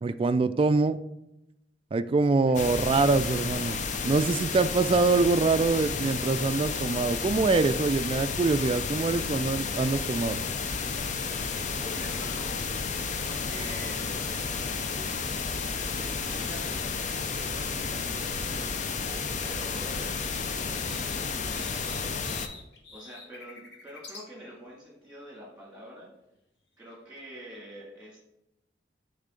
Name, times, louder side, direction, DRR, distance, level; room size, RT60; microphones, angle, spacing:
voice 1, 0.0-1.0 1.9-10.4, right 3 dB, 30° right, 11 dB, 0.3 m, -24 dB
sound 1, 2.5-22.5, left 5 dB, 45° left, 0.5 m, -32 dB
voice 2, 11.7-12.8 13.2-15.2 15.8-18.8 19.4-22.4 22.9-26.1 26.8-28.2, equal, 5° right, -4 dB, 2.4 m, -46 dB
sound 2, 16.3-16.7 18.9-19.0 19.2-24.3 26.9-27.6, left 4 dB, 70° left, 1.2 m, -48 dB
8.8 x 3.6 x 3.8 m, 0.87 s
head